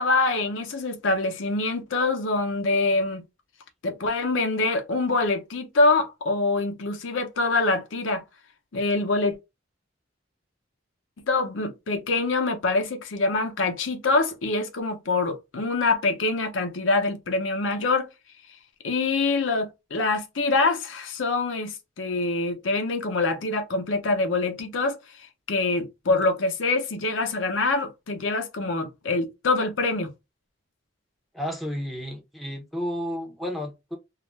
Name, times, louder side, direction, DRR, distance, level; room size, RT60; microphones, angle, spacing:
voice 1, 0.0-3.2 3.8-8.2 8.7-9.4 11.3-18.1 18.8-25.0 25.5-30.1, left 3 dB, 85° left, 0.6 m, -25 dB
voice 2, 31.3-34.0, equal, ahead, 0.6 m, -32 dB
2.4 x 2.1 x 3.1 m
head